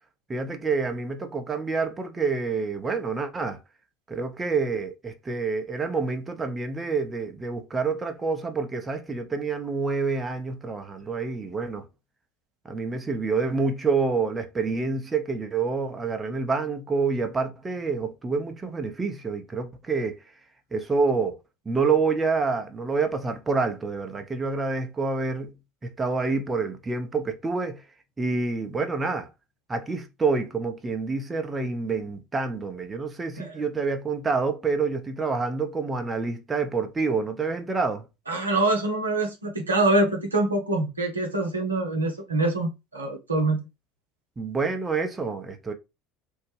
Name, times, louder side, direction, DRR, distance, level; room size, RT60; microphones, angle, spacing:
voice 1, 0.3-3.6 4.1-11.8 12.7-20.2 20.7-21.4 21.7-25.5 25.8-27.8 28.2-29.3 29.7-38.0 44.4-45.7, right 4 dB, 20° right, 0.7 m, -27 dB
voice 2, 38.3-43.6, right 2 dB, 90° right, 0.7 m, -25 dB
3.6 x 2.1 x 3.2 m
figure-of-eight pair, 70°, 0 cm